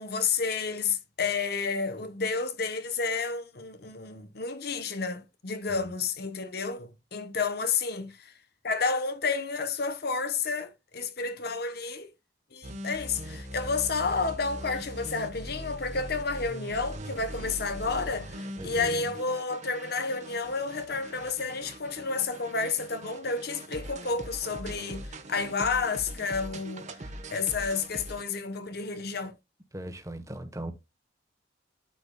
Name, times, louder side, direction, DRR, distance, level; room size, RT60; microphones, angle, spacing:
voice 1, 0.0-8.3 8.6-12.1 12.5-26.9 27.3-29.3, left 4 dB, 55° left, 1.0 m, -31 dB
sound 1, 12.6-28.2, right 1 dB, 40° right, 1.2 m, -41 dB
voice 2, 29.7-30.7, right 1 dB, 15° right, 1.2 m, -38 dB
12.0 x 5.0 x 2.3 m
head